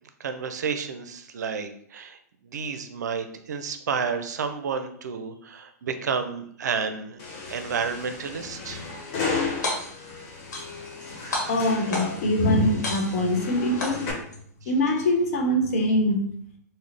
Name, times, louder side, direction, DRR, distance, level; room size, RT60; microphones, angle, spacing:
voice 1, 0.2-2.2 2.4-7.2 7.5-8.8 11.2-11.5, right 6 dB, 80° right, 9 dB, 0.5 m, -31 dB
sound 1, 7.2-14.1, left 4 dB, 40° left, 1.1 m, -34 dB
sound 2, 9.5-10.1 10.5-11.0 11.3-12.3 12.8-13.4 13.8-14.4, left 2 dB, 85° left, 1.2 m, -31 dB
voice 2, 11.5-14.1 14.7-16.3, left 1 dB, 60° left, 2 dB, 0.9 m, -23 dB
4.1 x 2.1 x 3.2 m, 0.64 s
hypercardioid pair, 135°, 9 cm